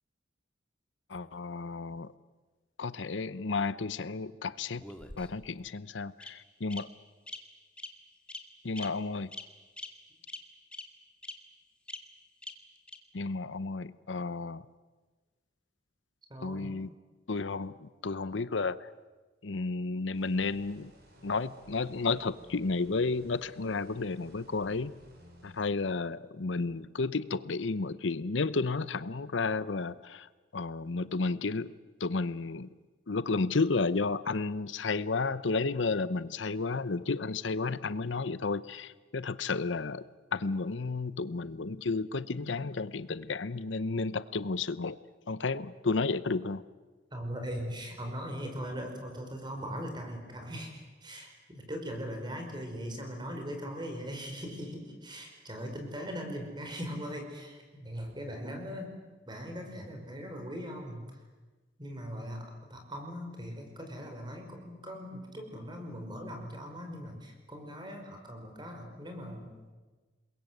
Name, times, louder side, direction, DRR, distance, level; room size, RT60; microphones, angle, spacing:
voice 1, 1.1-2.1 2.8-4.9 5.2-6.9 8.6-9.3 13.1-14.7 16.4-16.9 17.3-18.9 19.4-20.9 21.2-24.9 25.4-32.7 33.1-45.0 45.3-46.6, left 3 dB, 85° left, 16 dB, 0.8 m, -32 dB
Bird vocalization bird call bird song, 4.8-5.5 6.2-6.3 6.7-6.8 7.3-7.4 7.8-7.9 8.3-8.4 8.8-8.9 9.3-9.5 9.8-9.9 10.3-10.4 10.7-10.8 11.2-11.3 11.9-12.0 12.4-12.5 12.9-13.0, left 1 dB, 5° left, 1.9 m, -41 dB
voice 2, 16.3-16.7 47.1-58.9 59.2-61.1 61.8-69.7, equal, 25° right, 3 dB, 5.1 m, -40 dB
sound 1, 20.1-25.7, equal, 55° right, 6.2 m, -56 dB
28.0 x 22.0 x 8.0 m, 1.3 s
head